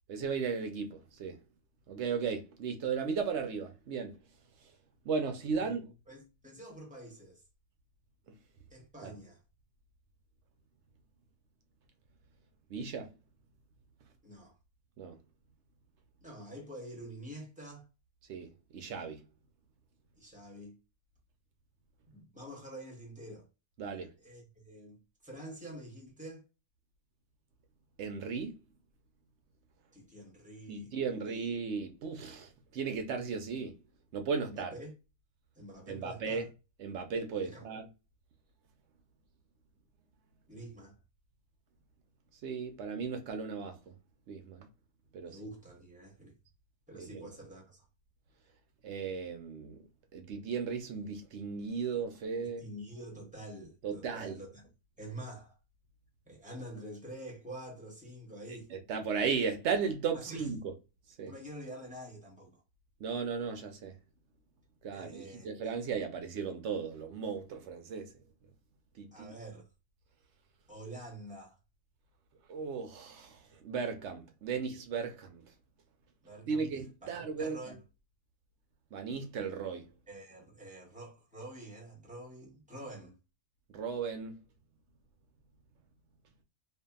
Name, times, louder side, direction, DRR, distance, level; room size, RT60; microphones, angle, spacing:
voice 1, 0.1-1.4 1.9-4.1 5.0-5.9 9.0-9.1 12.7-13.1 15.0-15.2 18.3-19.2 23.8-24.1 28.0-28.6 30.7-33.8 34.1-34.7 35.9-36.4 36.8-37.9 42.4-43.8 44.3-44.7 45.1-45.4 47.0-47.2 48.8-49.8 50.1-52.7 53.8-54.4 58.7-60.7 61.2-61.3 63.0-63.9 64.8-68.1 69.0-69.3 72.5-75.4 76.5-77.7 78.9-79.9 83.7-84.3, right 5 dB, 65° right, 0.7 m, -36 dB
voice 2, 6.1-7.4 8.7-9.4 14.2-14.6 16.2-17.9 20.2-20.8 22.1-23.5 24.2-26.4 29.9-31.3 34.4-34.9 35.5-36.5 37.4-37.7 40.5-40.9 45.2-46.3 46.9-47.9 52.6-54.7 55.0-55.6 56.3-58.7 60.1-60.5 61.2-62.6 64.9-65.5 69.1-69.7 70.7-71.6 76.2-76.7 77.0-77.8 80.1-83.2, right 1 dB, 5° right, 0.7 m, -47 dB
2.7 x 2.5 x 2.2 m
omnidirectional pair, 1.6 m